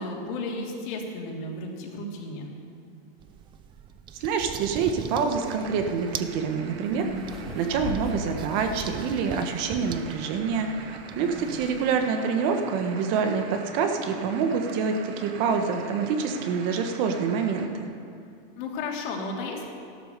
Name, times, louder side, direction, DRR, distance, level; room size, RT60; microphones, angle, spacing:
voice 1, 0.0-2.5 6.9-7.2 11.1-11.5 18.5-19.7, left 2 dB, 55° left, 0 dB, 2.9 m, -34 dB
sound 1, 3.2-12.1, right 8 dB, 15° right, 0.4 m, -42 dB
sound 2, 4.1-8.9, equal, ahead, 2.3 m, -39 dB
voice 2, 4.2-7.1 7.5-17.9, right 5 dB, 45° right, 5 dB, 1.4 m, -26 dB
sound 3, 5.3-17.7, right 5 dB, 85° right, 1.9 m, -43 dB
14.0 x 12.0 x 6.8 m, 2.4 s
supercardioid pair, 145°, 30 cm